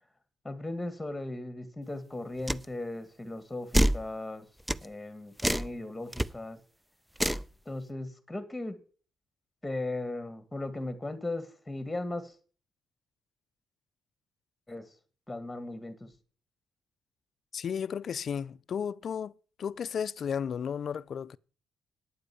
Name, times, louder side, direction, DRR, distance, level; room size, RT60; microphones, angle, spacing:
voice 1, 0.4-4.5 4.8-6.6 7.7-8.8 9.6-12.3 14.7-14.9 15.3-16.1, left 2 dB, 10° left, 1.9 m, -37 dB
sound 1, 2.5-2.6 3.7-4.0 4.7-4.8 5.4-5.7 6.1-6.3 7.2-7.5, right 1 dB, 5° right, 0.5 m, -26 dB
voice 2, 17.5-19.3 19.6-21.4, left 7 dB, 55° left, 0.5 m, -33 dB
9.5 x 8.1 x 8.6 m
cardioid pair, 90°, 0 cm